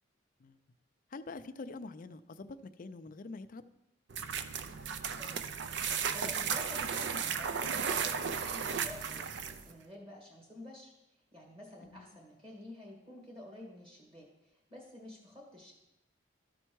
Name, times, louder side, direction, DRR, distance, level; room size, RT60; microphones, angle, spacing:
voice 1, 1.1-3.6 11.8-12.1, left 3 dB, 45° left, 11 dB, 0.4 m, -45 dB
sound 1, 4.1-9.7, right 6 dB, 60° right, 0.5 m, -35 dB
voice 2, 5.7-10.9 11.3-14.3 14.7-15.7, left 1 dB, 30° right, -1 dB, 1.8 m, -50 dB
13.0 x 4.4 x 4.6 m, 0.88 s
head